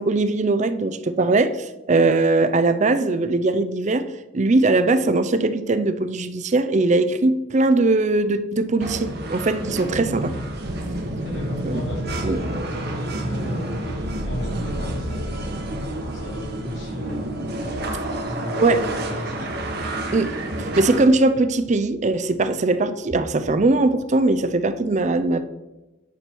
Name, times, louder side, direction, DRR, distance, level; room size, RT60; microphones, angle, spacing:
voice 1, 0.0-4.1 4.3-10.3 11.6-11.8 12.2-12.4 18.6-18.8 20.1-20.3 20.6-25.5, right 2 dB, 40° right, 12 dB, 0.5 m, -20 dB
sound 1, 8.8-21.1, right 1 dB, 55° right, 1.3 m, -29 dB
voice 2, 11.1-15.6 16.1-17.6 18.2-19.5, left 1 dB, 65° left, -3 dB, 3.1 m, -35 dB
9.7 x 6.0 x 4.5 m, 1.0 s
head